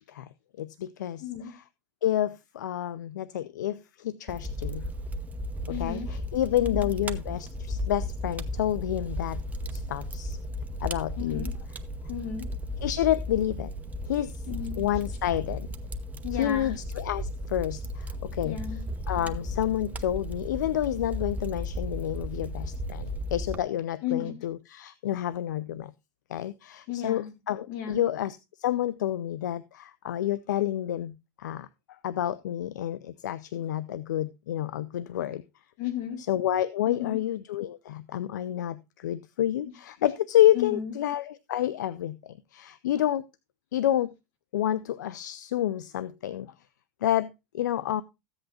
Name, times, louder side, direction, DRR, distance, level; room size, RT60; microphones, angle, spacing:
voice 1, 0.6-1.6 2.0-4.9 5.7-9.4 9.7-10.4 10.8-11.5 12.8-13.7 14.1-14.4 14.8-15.7 16.3-18.6 19.1-25.9 26.3-35.4 36.3-43.2 43.7-44.1 44.5-46.5 47.0-48.0, left 12 dB, 85° left, 0.4 m, -29 dB
voice 2, 1.2-1.5 5.7-6.2 6.6-6.8 11.2-11.5 12.1-12.5 14.5-14.8 16.2-16.7 18.4-18.8 24.0-24.3 26.9-27.3 27.7-28.0 35.8-36.2 36.9-37.2 40.5-40.9, left 9 dB, 65° left, 3.1 m, -33 dB
Fire, 4.3-23.6, equal, 15° right, 0.8 m, -35 dB
14.5 x 8.0 x 2.8 m
hypercardioid pair, 100°, 9 cm